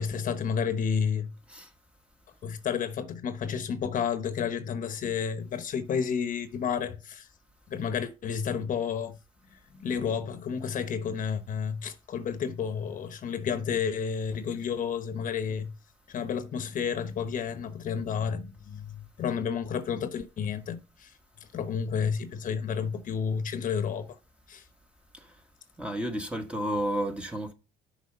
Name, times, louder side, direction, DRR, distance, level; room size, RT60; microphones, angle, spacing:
voice 1, 0.0-1.3 2.4-7.3 7.7-9.2 9.8-15.7 16.1-21.1 21.5-24.1 24.5-24.6, left 7 dB, 50° left, 1.0 m, -31 dB
voice 2, 25.8-27.5, equal, 5° right, 1.4 m, -32 dB
6.6 x 4.9 x 6.6 m
cardioid pair, 110°, 17 cm